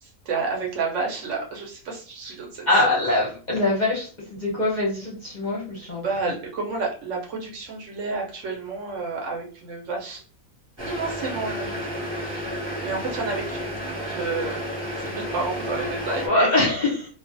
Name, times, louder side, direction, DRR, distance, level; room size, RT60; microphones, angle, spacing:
voice 1, 0.0-3.0 6.0-10.2 10.8-11.8 12.2-12.5 12.8-14.6 14.9-16.5, right 4 dB, 65° right, -1 dB, 0.9 m, -30 dB
voice 2, 2.7-6.0 16.2-17.1, left 2 dB, 40° left, -5 dB, 0.7 m, -23 dB
sound 1, 10.8-16.3, equal, 20° right, 0.8 m, -31 dB
2.3 x 2.3 x 2.5 m, 0.39 s
omnidirectional pair, 1.5 m